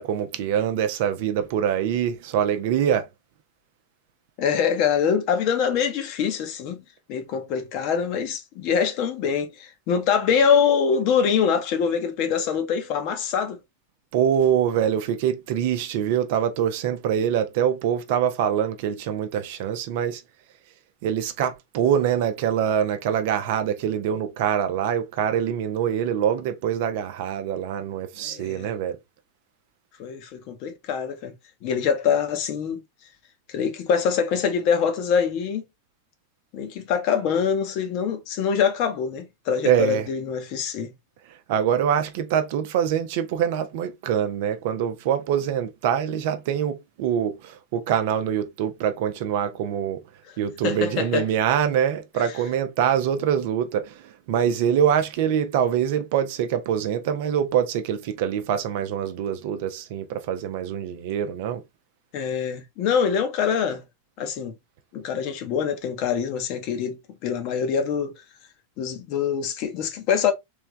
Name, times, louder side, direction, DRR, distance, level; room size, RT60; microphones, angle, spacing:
voice 1, 0.0-3.1 14.1-20.2 21.0-29.0 39.6-40.1 41.5-50.0 50.4-61.6, right 9 dB, 50° right, 0.6 m, -24 dB
voice 2, 4.4-6.8 7.1-13.6 28.2-28.7 30.0-31.3 31.6-32.8 33.5-35.6 36.5-40.9 50.3-50.4 50.6-51.2 62.1-63.8 64.2-64.5 64.9-68.1 68.8-70.3, left 7 dB, 45° left, 1.0 m, -24 dB
3.4 x 3.4 x 3.2 m
figure-of-eight pair, 90°, 0 cm